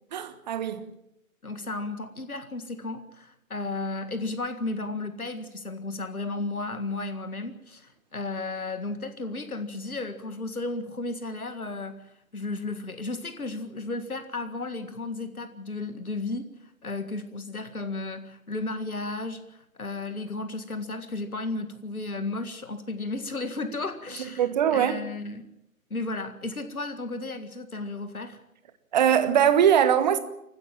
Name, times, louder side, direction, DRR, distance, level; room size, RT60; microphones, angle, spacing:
voice 1, 0.1-0.8 24.4-25.0 28.9-30.2, right 9 dB, 30° right, 1.4 m, -21 dB
voice 2, 1.4-25.5 25.9-28.4, left 2 dB, 80° left, 1.9 m, -34 dB
26.5 x 15.0 x 7.4 m
figure-of-eight pair, 135°, 43 cm